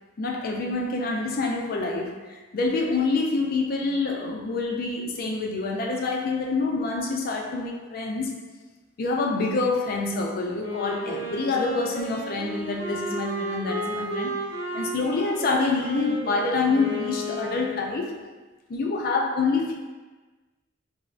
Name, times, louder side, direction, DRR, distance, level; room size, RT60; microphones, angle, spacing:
voice 1, 0.2-8.3 9.0-14.3 14.7-18.1 18.7-19.7, left 3 dB, 50° left, 0 dB, 0.4 m, -26 dB
Wind instrument woodwind instrument, 10.6-18.2, right 1 dB, 65° right, 0.8 m, -33 dB
3.4 x 2.0 x 2.4 m, 1.2 s
head